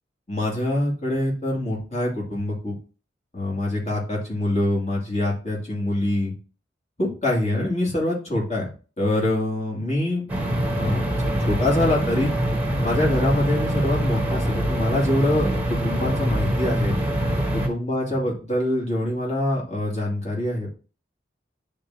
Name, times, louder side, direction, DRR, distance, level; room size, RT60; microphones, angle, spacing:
voice 1, 0.3-2.8 3.3-6.3 7.0-8.7 9.0-10.2 10.8-12.3 12.8-17.0 17.5-20.7, left 1 dB, 35° left, -3 dB, 2.5 m, -24 dB
sound 1, 10.3-17.7, right 1 dB, 10° right, 1.1 m, -24 dB
10.0 x 3.8 x 2.9 m, 0.36 s
head